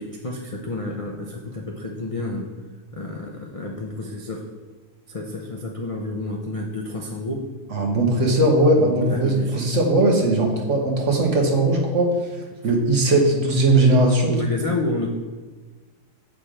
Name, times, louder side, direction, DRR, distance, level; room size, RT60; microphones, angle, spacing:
voice 1, 0.0-2.5 2.9-4.5 5.1-7.4 8.8-9.6 14.3-15.1, left 2 dB, 50° left, -1 dB, 0.4 m, -30 dB
voice 2, 7.7-12.1 12.6-14.4, right 2 dB, 50° right, 0 dB, 1.5 m, -19 dB
7.3 x 5.0 x 4.9 m, 1.3 s
omnidirectional pair, 1.7 m